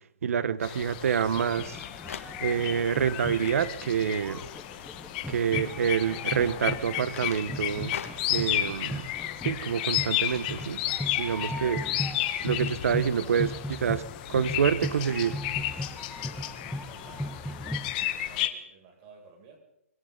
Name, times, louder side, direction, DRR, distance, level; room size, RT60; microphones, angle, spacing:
voice 1, 0.2-1.8 2.4-4.4 5.3-8.0 8.3-9.1 9.4-10.8 11.2-11.8 12.4-14.0 14.3-15.4, right 7 dB, 65° right, 14 dB, 1.5 m, -27 dB
sound 1, 0.6-17.4, left 7 dB, 65° left, 2.2 m, -50 dB
sound 2, 0.6-18.5, left 13 dB, 35° left, 1.5 m, -33 dB
sound 3, 1.3-18.1, left 1 dB, ahead, 0.8 m, -38 dB
voice 2, 12.8-13.8 14.3-14.8 15.3-19.6, right 5 dB, 30° right, 0 dB, 7.4 m, -54 dB
25.5 x 24.5 x 4.1 m, 0.79 s
hypercardioid pair, 150°, 8 cm